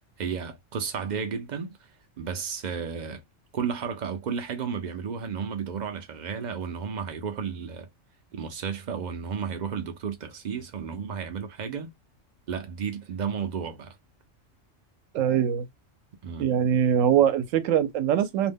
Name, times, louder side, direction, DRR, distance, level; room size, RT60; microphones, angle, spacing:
voice 1, 0.2-1.8 2.2-3.2 3.5-7.9 8.3-11.9 12.5-14.0 16.2-16.5, right 6 dB, 60° right, 0.4 m, -33 dB
voice 2, 15.1-15.6 16.4-18.5, right 9 dB, 80° right, 1.0 m, -22 dB
2.5 x 2.1 x 3.4 m
omnidirectional pair, 1.3 m